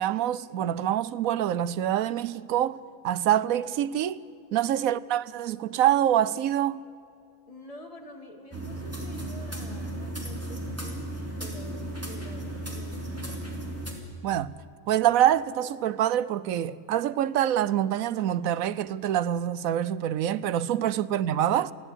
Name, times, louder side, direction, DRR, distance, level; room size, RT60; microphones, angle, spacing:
voice 1, 0.0-4.2 4.5-6.8 14.2-14.5 14.9-21.7, right 11 dB, 90° right, 1.1 m, -25 dB
voice 2, 7.5-11.1 11.4-13.1 20.7-21.0, left 1 dB, 25° left, 2.5 m, -47 dB
sound 1, 8.5-13.9, right 1 dB, 10° right, 3.2 m, -35 dB
22.0 x 15.0 x 9.9 m
omnidirectional pair, 1.4 m